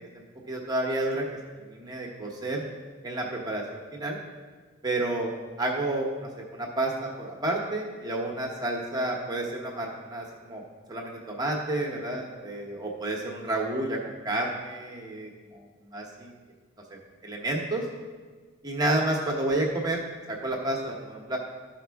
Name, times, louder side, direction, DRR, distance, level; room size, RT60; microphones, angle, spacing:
voice 1, 0.1-1.2 1.6-2.6 3.0-4.2 4.8-5.3 5.6-10.6 10.9-15.6 15.9-16.3 17.2-17.8 18.6-20.0 20.3-21.4, right 1 dB, 20° right, -1 dB, 0.9 m, -30 dB
13.0 x 5.1 x 3.5 m, 1.4 s
head